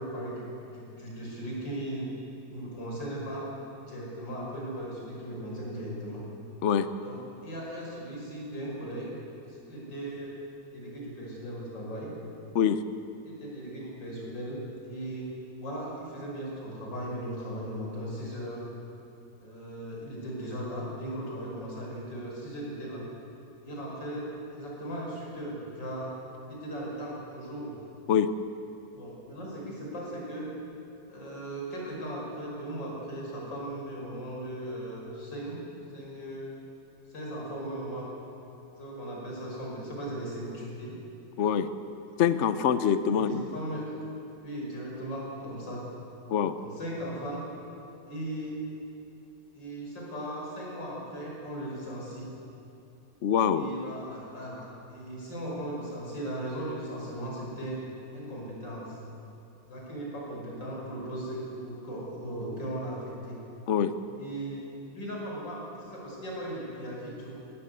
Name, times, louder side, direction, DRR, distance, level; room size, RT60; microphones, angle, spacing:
voice 1, 0.0-2.1 2.5-3.5 3.8-6.3 7.0-9.1 9.5-10.4 10.7-12.1 13.2-15.3 15.6-18.6 19.4-23.0 23.6-26.1 26.5-27.8 28.9-30.5 31.1-35.6 35.9-36.5 37.1-38.1 38.7-40.9 43.1-43.8 44.4-45.8 46.6-47.5 48.1-48.5 49.5-52.3 53.5-57.8 58.1-59.0 59.7-63.4 64.2-64.7 64.9-67.3, right 1 dB, 90° left, -4 dB, 6.4 m, -37 dB
voice 2, 41.4-41.7 42.2-43.5 46.3-46.5 53.2-53.7 63.7-63.9, left 8 dB, 55° left, 12 dB, 0.8 m, -24 dB
20.0 x 18.0 x 8.2 m, 2.9 s
omnidirectional pair, 1.9 m